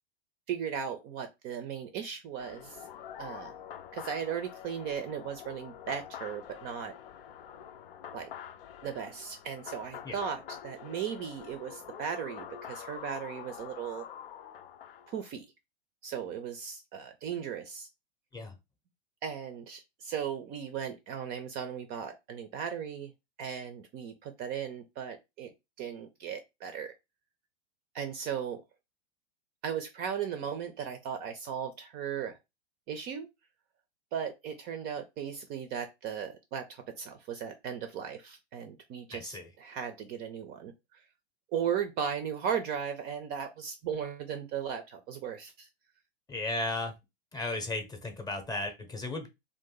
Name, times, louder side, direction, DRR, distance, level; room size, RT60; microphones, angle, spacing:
voice 1, 0.5-2.8 3.2-3.5 3.9-6.9 8.1-8.3 8.8-14.0 15.1-15.4 16.0-17.9 19.2-23.1 23.4-25.5 25.8-26.9 27.9-28.6 29.6-32.3 32.9-33.3 34.1-40.7 41.5-45.7, right 8 dB, 30° right, 0.5 m, -37 dB
sound 1, 2.4-15.3, left 9 dB, 65° left, 0.5 m, -46 dB
voice 2, 39.1-39.5 46.3-46.9 47.3-49.3, left 2 dB, 10° left, 0.7 m, -35 dB
2.6 x 2.5 x 3.7 m
figure-of-eight pair, 100°, 31 cm